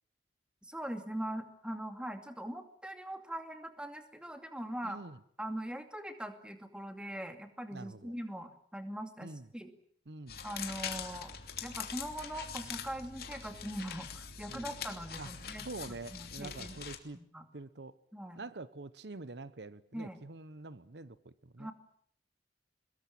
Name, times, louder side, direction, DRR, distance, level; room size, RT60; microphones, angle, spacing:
voice 1, 0.6-5.0 5.4-9.7 10.4-11.3 11.6-15.7 16.1-16.8 17.1-17.4 18.1-18.4 19.9-20.2 21.6-21.7, right 1 dB, 5° right, 7 dB, 2.5 m, -41 dB
voice 2, 4.8-5.2 7.7-8.1 9.2-9.5 10.1-10.4 14.5-14.8 15.2-15.3 15.6-17.2 17.5-17.9 18.3-21.7, right 3 dB, 70° right, 15 dB, 1.0 m, -46 dB
sound 1, 10.3-17.0, left 7 dB, 60° left, 2.9 m, -43 dB
23.0 x 21.5 x 8.8 m, 0.64 s
head